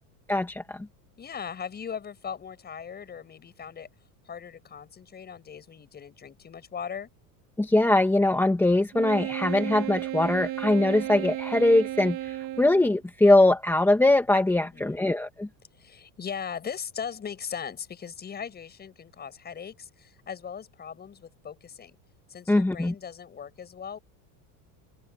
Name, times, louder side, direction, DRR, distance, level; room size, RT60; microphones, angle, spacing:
voice 1, 0.3-0.9 7.6-15.5 22.5-22.9, left 2 dB, 5° left, 1.9 m, -22 dB
voice 2, 1.2-3.9 4.3-7.1 14.6-15.0 15.8-22.0 22.3-24.0, left 7 dB, 20° left, 7.1 m, -39 dB
Wind instrument woodwind instrument, 8.9-13.0, right 14 dB, 45° right, 3.8 m, -34 dB
cardioid pair, 155°, 43 cm